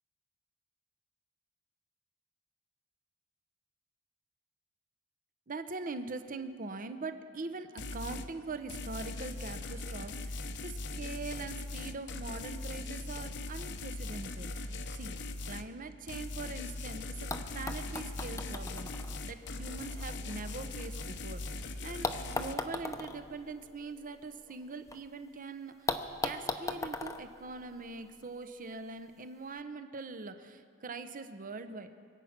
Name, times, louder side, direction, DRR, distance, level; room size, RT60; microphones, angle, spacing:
voice 1, 5.5-15.1 15.5-17.3 17.5-18.9 19.3-31.9, right 3 dB, 40° right, 9 dB, 0.8 m, -42 dB
sound 1, 7.8-8.3 8.7-15.7 16.1-22.6, left 2 dB, 55° left, 0.8 m, -40 dB
sound 2, 17.3-21.4 22.0-25.0 25.3-25.4 25.9-28.3 29.2-29.3, left 3 dB, 15° left, 0.7 m, -39 dB
25.5 x 8.7 x 5.9 m, 2.2 s
head